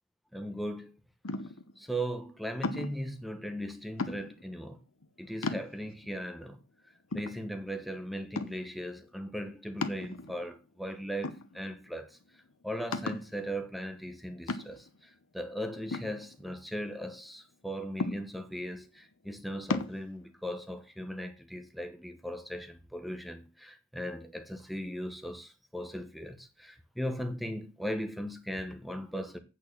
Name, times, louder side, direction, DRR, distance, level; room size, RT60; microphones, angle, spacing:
voice 1, 0.3-0.9 1.8-4.8 5.2-6.6 7.1-12.2 12.6-14.9 15.3-29.4, equal, ahead, 1.0 m, -38 dB
sound 1, 1.2-1.7 2.6-3.1 4.0-4.5 5.0-5.1 5.4-6.1 6.6-6.7 7.1-7.9 8.3-8.8 9.8-10.5 11.2-11.9 12.2-12.3 12.9-13.3 14.5-15.0 15.9-16.8 18.0-18.6 19.7-20.0, left 3 dB, 85° left, 0.9 m, -35 dB
8.6 x 4.5 x 7.1 m
head